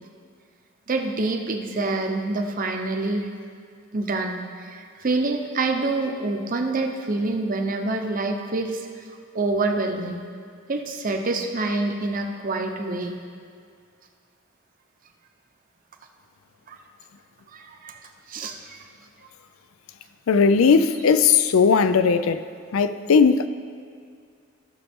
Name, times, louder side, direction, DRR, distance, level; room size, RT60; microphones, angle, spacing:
voice 1, 0.9-3.3 3.9-8.9 9.3-10.2 10.7-13.2 16.7-16.8 17.5-17.9 18.3-18.8, right 2 dB, 40° right, 3 dB, 0.8 m, -26 dB
voice 2, 20.3-22.4 22.7-23.5, left 5 dB, 85° left, 12 dB, 0.4 m, -18 dB
15.0 x 6.2 x 3.6 m, 2.2 s
head